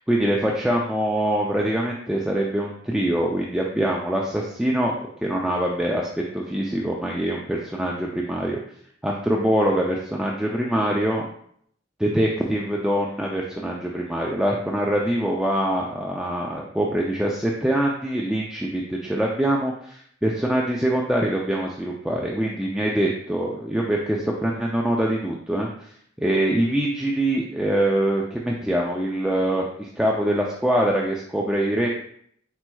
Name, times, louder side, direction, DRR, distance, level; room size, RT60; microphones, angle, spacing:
voice 1, 0.0-6.1 6.3-8.6 9.0-11.3 12.0-25.9 26.2-31.9, right 1 dB, 5° right, -2 dB, 0.3 m, -24 dB
4.5 x 4.3 x 2.2 m, 0.65 s
head